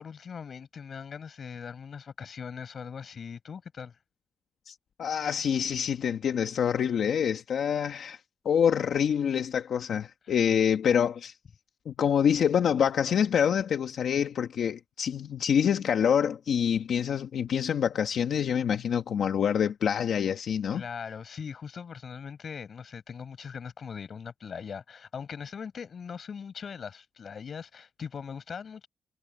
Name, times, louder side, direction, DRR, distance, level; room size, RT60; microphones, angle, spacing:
voice 1, 0.0-4.0 10.3-10.4 20.7-28.9, left 6 dB, 50° left, 7.6 m, -40 dB
voice 2, 4.7-8.2 8.4-11.4 11.9-20.8, left 8 dB, 75° left, 1.2 m, -26 dB
wide cardioid pair, 170°, 0 cm